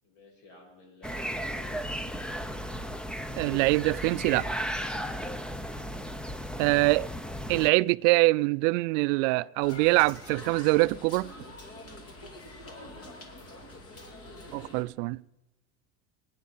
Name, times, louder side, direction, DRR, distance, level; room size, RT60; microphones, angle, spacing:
voice 1, 0.0-2.1 6.5-7.0 12.6-14.0, left 2 dB, 65° left, 6.8 m, -53 dB
sound 1, 1.0-7.7, equal, ahead, 0.6 m, -35 dB
voice 2, 3.4-4.5 6.6-7.1 7.5-11.3 14.5-15.2, right 23 dB, 60° right, 0.5 m, -24 dB
sound 2, 9.6-14.8, left 1 dB, 30° left, 2.6 m, -45 dB
24.0 x 9.8 x 5.6 m
supercardioid pair, 120°, 43 cm